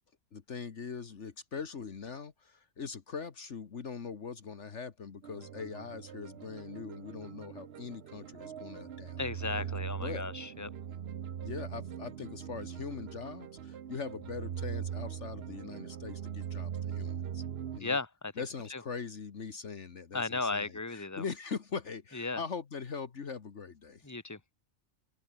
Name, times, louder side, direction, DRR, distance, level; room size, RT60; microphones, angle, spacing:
voice 1, 0.3-9.2 10.0-10.2 11.4-17.4 17.7-18.0 18.4-24.1, left 5 dB, 60° left, 1.7 m, -41 dB
sound 1, 5.2-17.8, right 9 dB, 55° right, 1.0 m, -41 dB
voice 2, 9.2-10.7 17.8-18.3 18.7-18.8 20.1-21.2 22.1-22.4 24.0-24.4, left 3 dB, 10° left, 1.9 m, -35 dB
open air
omnidirectional pair, 1.4 m